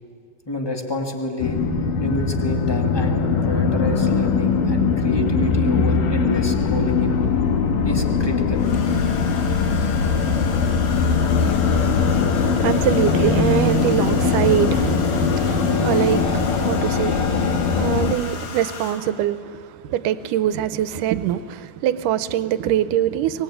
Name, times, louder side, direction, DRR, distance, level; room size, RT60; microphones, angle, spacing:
voice 1, 0.5-1.6 2.0-7.3 7.8-8.6, left 1 dB, 15° left, 0.9 m, -28 dB
sound 1, 1.4-18.2, left 5 dB, 80° left, 2.9 m, -20 dB
Domestic sounds home sounds, 8.5-19.3 20.5-20.8 21.0-21.4, left 5 dB, 60° left, 2.9 m, -36 dB
voice 2, 12.5-23.4, right 11 dB, 80° right, 2.3 m, -23 dB
24.5 x 20.0 x 8.7 m
omnidirectional pair, 3.8 m